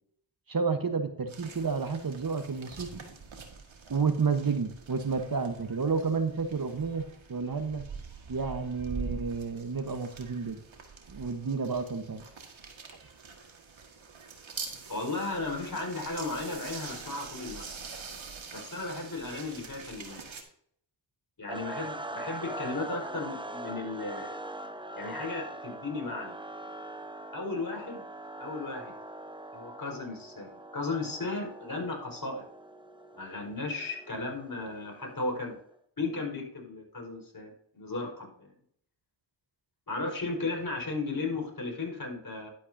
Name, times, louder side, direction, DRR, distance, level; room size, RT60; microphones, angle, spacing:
voice 1, 0.5-3.0 3.9-7.8 8.3-10.6 11.1-12.2, right 5 dB, 45° right, 8 dB, 1.2 m, -30 dB
sound 1, 1.3-20.4, right 5 dB, 70° right, 1.8 m, -45 dB
voice 2, 14.9-17.7 18.5-20.2 21.4-24.4 25.0-26.4 27.3-28.0 28.4-29.0 29.5-32.5 33.1-35.6 36.0-38.5 39.9-42.5, left 3 dB, 45° left, 0 dB, 4.7 m, -35 dB
sound 2, 21.5-35.6, right 1 dB, 10° right, 0.9 m, -42 dB
11.5 x 9.2 x 2.7 m, 0.66 s
cardioid pair, 45°, 48 cm